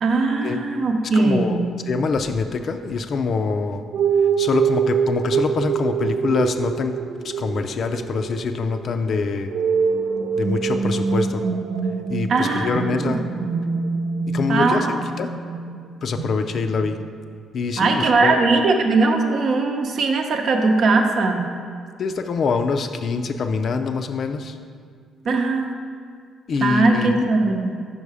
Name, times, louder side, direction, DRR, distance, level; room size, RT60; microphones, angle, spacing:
voice 1, 0.0-1.6 12.3-13.5 14.5-14.9 17.8-21.5 25.2-25.7 26.6-27.7, right 3 dB, 60° right, 3 dB, 0.7 m, -20 dB
voice 2, 1.1-3.8 4.4-7.0 7.2-9.5 10.4-11.4 12.1-13.2 14.3-15.3 16.0-17.0 17.5-18.4 22.0-24.6 26.5-27.3, left 4 dB, 55° left, 8 dB, 0.4 m, -24 dB
sound 1, 3.9-17.1, right 6 dB, 90° right, 0.4 m, -25 dB
5.6 x 5.5 x 4.8 m, 2.1 s
cardioid pair, 90°, 0 cm